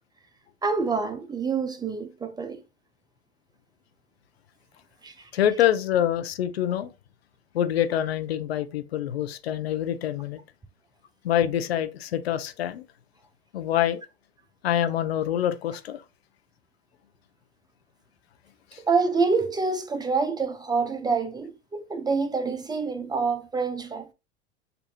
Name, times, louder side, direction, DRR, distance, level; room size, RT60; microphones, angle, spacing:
voice 1, 0.6-2.6 5.0-5.1 18.9-24.1, right 4 dB, 15° right, 0.6 m, -26 dB
voice 2, 5.3-6.9 7.5-10.4 11.2-12.8 13.5-14.0 14.6-16.0 18.7-18.8, left 11 dB, 75° left, 0.7 m, -25 dB
6.7 x 2.7 x 2.7 m
hypercardioid pair, 90°, 31 cm